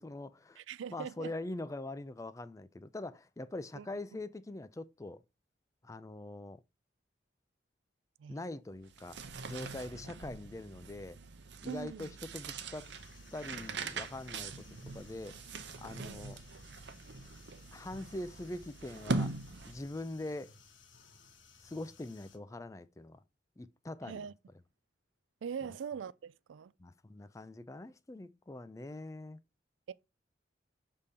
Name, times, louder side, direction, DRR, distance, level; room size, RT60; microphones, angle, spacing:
voice 1, 0.0-0.6 0.9-5.2 5.8-6.6 8.3-11.2 11.6-12.9 13.3-14.5 14.9-15.4 15.8-16.4 17.7-19.3 19.7-20.5 21.6-23.2 23.6-24.3 26.8-29.4, left 2 dB, 15° left, 0.3 m, -43 dB
voice 2, 0.6-1.3 3.8-3.9 4.1-4.2 8.2-8.4 11.7-12.1 16.0-16.2 24.0-24.3 25.4-26.7 29.9-30.0, right 7 dB, 85° right, 0.4 m, -42 dB
sound 1, 8.8-20.0, right 3 dB, 65° right, 0.7 m, -42 dB
sound 2, 12.7-22.4, left 5 dB, 85° left, 1.2 m, -60 dB
6.7 x 3.6 x 4.1 m
head